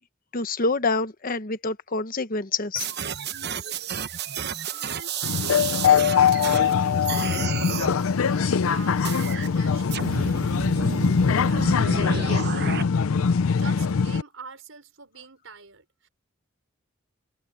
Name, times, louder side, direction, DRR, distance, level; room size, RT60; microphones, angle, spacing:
voice 1, 0.3-2.9, left 3 dB, 45° left, 1.1 m, -26 dB
sound 1, 2.8-6.7 7.0-7.9 9.0-9.5 9.9-12.8, right 6 dB, 55° right, 1.0 m, -31 dB
voice 2, 4.9-12.7 13.5-16.1, right 4 dB, 70° right, 5.8 m, -46 dB
sound 2, 5.2-14.2, left 6 dB, 90° left, 0.5 m, -22 dB
head